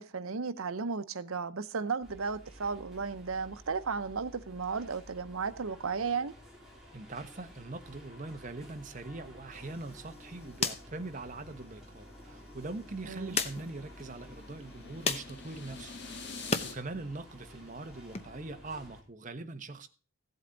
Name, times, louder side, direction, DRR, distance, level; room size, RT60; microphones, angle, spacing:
voice 1, 0.0-6.3 13.1-13.4, right 5 dB, 85° right, 0.8 m, -34 dB
sound 1, 2.0-19.0, equal, ahead, 3.2 m, -52 dB
voice 2, 6.9-15.9 16.2-19.9, right 2 dB, 35° right, 1.0 m, -42 dB
sound 2, 9.5-16.7 17.1-18.2, left 4 dB, 30° left, 0.9 m, -39 dB
sound 3, 12.5-16.7, left 4 dB, 55° left, 1.7 m, -47 dB
15.5 x 8.1 x 3.9 m
head